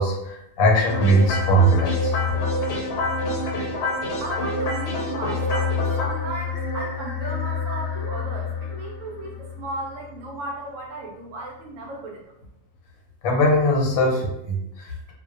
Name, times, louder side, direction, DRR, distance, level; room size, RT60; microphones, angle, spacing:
voice 1, 0.0-2.1 13.2-15.1, right 1 dB, 90° left, -1 dB, 1.1 m, -20 dB
sound 1, 0.9-10.1, left 3 dB, 65° left, 0.8 m, -27 dB
voice 2, 4.2-12.2, right 2 dB, 75° right, -1 dB, 0.9 m, -35 dB
2.5 x 2.1 x 2.4 m, 0.79 s
omnidirectional pair, 1.4 m